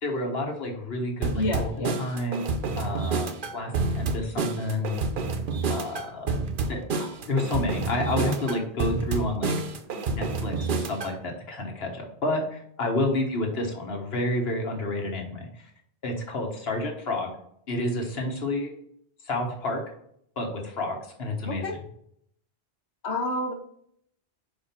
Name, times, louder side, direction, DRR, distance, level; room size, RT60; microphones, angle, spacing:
voice 1, 0.0-5.0 5.7-6.4 6.7-9.5 10.1-15.7 16.0-17.3 17.7-18.7 19.2-19.8 20.4-21.6, left 1 dB, 65° left, 1 dB, 1.6 m, -30 dB
sound 1, 1.2-11.2, right 4 dB, 55° right, 0.8 m, -29 dB
voice 2, 1.3-2.0 21.5-21.8 23.0-23.5, left 1 dB, 80° left, 5 dB, 1.3 m, -29 dB
5.4 x 4.7 x 4.4 m, 0.69 s
omnidirectional pair, 1.1 m